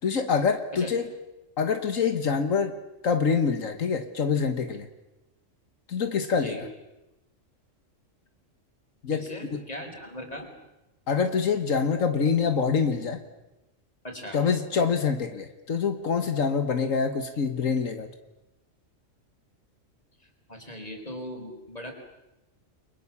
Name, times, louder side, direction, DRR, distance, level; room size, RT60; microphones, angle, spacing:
voice 1, 0.0-1.1 1.6-2.7 3.0-4.9 5.9-6.7 9.0-9.6 11.1-13.2 14.3-18.1, left 5 dB, 85° left, 7 dB, 1.8 m, -25 dB
voice 2, 9.1-10.5 14.0-14.4 20.5-21.9, left 1 dB, 30° left, 4 dB, 4.7 m, -39 dB
30.0 x 23.0 x 7.3 m, 0.98 s
omnidirectional pair, 1.3 m